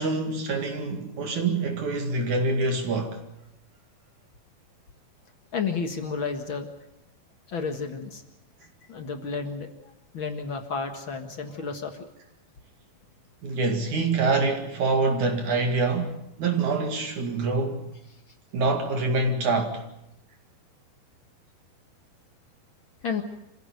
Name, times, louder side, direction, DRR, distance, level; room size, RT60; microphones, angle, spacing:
voice 1, 0.0-3.2 13.4-17.9 18.5-19.8, right 3 dB, 55° right, 3.3 m, -25 dB
voice 2, 5.5-6.7 7.5-8.2 8.9-9.7 10.1-12.0 23.0-23.2, left 5 dB, 45° left, 1.7 m, -31 dB
27.0 x 15.5 x 9.3 m
omnidirectional pair, 4.2 m